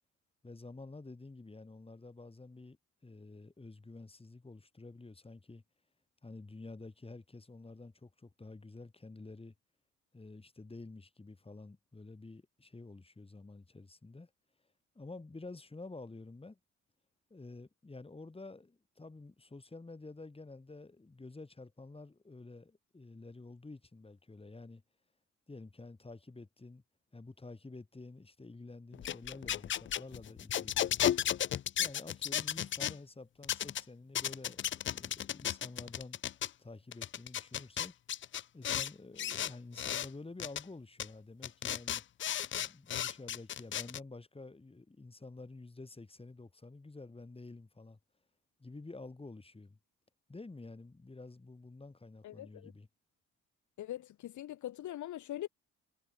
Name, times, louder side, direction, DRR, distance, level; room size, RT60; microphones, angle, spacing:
voice 1, 0.4-2.8 3.0-5.6 6.2-9.5 10.1-14.3 15.0-16.6 17.3-24.8 25.5-26.8 27.1-31.1 31.8-36.2 36.6-38.0 38.5-42.0 42.6-48.0 48.6-49.8 50.3-52.9, left 3 dB, 20° left, 5.5 m, -50 dB
sound 1, 28.9-32.9 33.4-33.8 34.1-36.5 36.9-38.9 39.2-40.1 40.4-40.6 41.0-41.1 41.4-44.0, left 10 dB, 40° left, 0.5 m, -34 dB
voice 2, 52.2-52.7 53.8-55.5, left 13 dB, 75° left, 1.8 m, -42 dB
cardioid pair, 90°, 30 cm